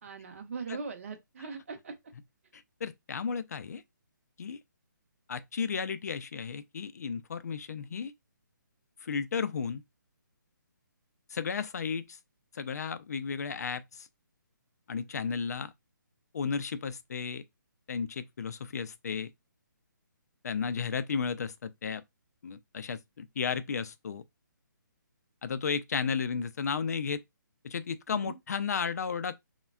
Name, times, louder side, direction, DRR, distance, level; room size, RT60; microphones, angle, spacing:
voice 1, 0.0-1.9 28.1-28.4, right 5 dB, 40° right, 0.6 m, -40 dB
voice 2, 2.8-3.8 4.4-4.6 5.3-8.1 9.0-9.8 11.3-12.2 12.5-14.1 14.9-15.7 16.3-17.4 17.9-19.3 20.4-22.0 22.4-24.2 25.4-27.2 27.6-29.4, left 6 dB, 50° left, 0.3 m, -33 dB
3.3 x 2.1 x 2.2 m
hypercardioid pair, 170°, 11 cm